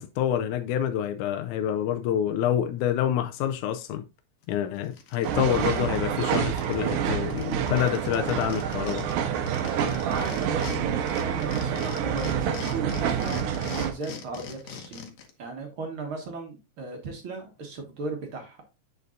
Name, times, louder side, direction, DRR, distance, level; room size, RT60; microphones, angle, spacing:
voice 1, 0.0-4.0 4.5-9.0, left 10 dB, 80° left, 2.0 m, -27 dB
sound 1, 4.4-4.5 4.8-6.8 7.0-7.1 7.3-10.8 11.1-15.3, left 7 dB, 60° left, 2.0 m, -41 dB
sound 2, 5.2-13.9, right 8 dB, 90° right, 2.4 m, -28 dB
voice 2, 9.6-15.1 15.4-18.6, right 3 dB, 50° right, 2.0 m, -36 dB
8.0 x 6.7 x 2.5 m
omnidirectional pair, 3.5 m